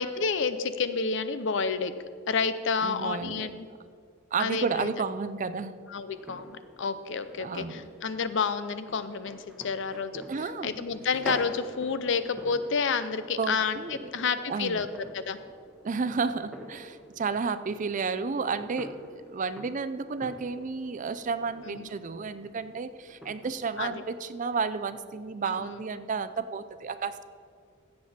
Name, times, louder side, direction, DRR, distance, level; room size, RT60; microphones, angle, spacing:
voice 1, 0.0-1.9 2.3-3.7 4.4-4.9 5.9-10.2 10.6-14.9 15.1-15.4 21.7-21.9 23.8-24.0 25.5-25.6, left 5 dB, 60° left, 12 dB, 0.6 m, -30 dB
voice 2, 2.8-3.6 4.3-5.8 7.4-7.9 10.3-10.8 13.4-14.8 15.8-27.2, right 4 dB, 40° right, 12 dB, 0.5 m, -32 dB
sound 1, 6.1-23.5, equal, ahead, 1.3 m, -47 dB
15.5 x 7.7 x 4.3 m, 2.3 s
head